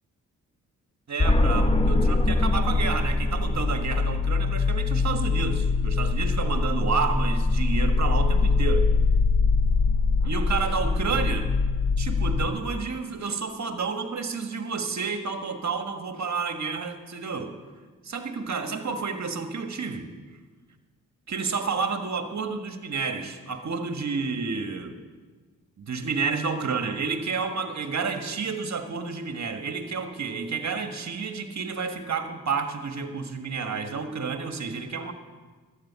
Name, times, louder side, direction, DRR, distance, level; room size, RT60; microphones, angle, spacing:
voice 1, 1.1-8.9 10.2-11.5 12.0-17.6 18.0-20.1 21.3-25.0 25.8-35.1, right 5 dB, 50° right, 6 dB, 1.6 m, -30 dB
sound 1, 1.2-12.5, left 3 dB, 15° left, 1.0 m, -23 dB
12.5 x 9.1 x 7.0 m, 1.4 s
supercardioid pair, 45°, 35 cm